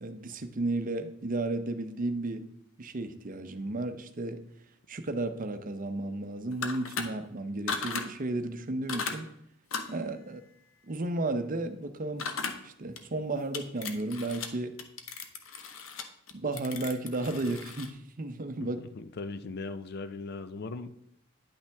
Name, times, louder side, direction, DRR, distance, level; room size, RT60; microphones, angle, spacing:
voice 1, 0.0-2.5 2.8-4.4 4.9-9.3 9.9-10.4 10.9-12.3 12.6-14.7 16.3-18.8, right 2 dB, 40° right, 8 dB, 0.7 m, -33 dB
sound 1, 6.5-7.0 7.7-8.1 8.9-9.2 9.7-10.0 12.2-12.6 13.0-13.1 13.5-14.5 14.8-17.9, left 5 dB, 75° left, 0.8 m, -36 dB
voice 2, 18.6-20.9, left 3 dB, 50° left, 11 dB, 0.5 m, -39 dB
10.0 x 5.7 x 3.4 m, 0.78 s
head